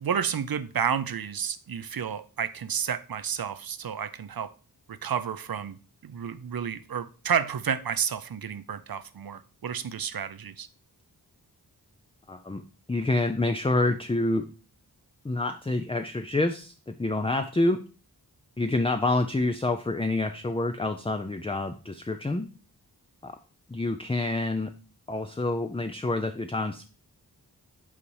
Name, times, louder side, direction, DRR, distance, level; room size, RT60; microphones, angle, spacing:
voice 1, 0.0-4.5 4.9-5.8 6.0-10.7, right 7 dB, 60° right, 0.6 m, -31 dB
voice 2, 12.3-12.6 12.9-14.4 15.2-17.8 18.6-22.5 23.2-23.3 23.7-24.7 25.1-26.9, left 2 dB, 15° left, 0.5 m, -27 dB
5.8 x 4.0 x 4.7 m
cardioid pair, 40°, 40 cm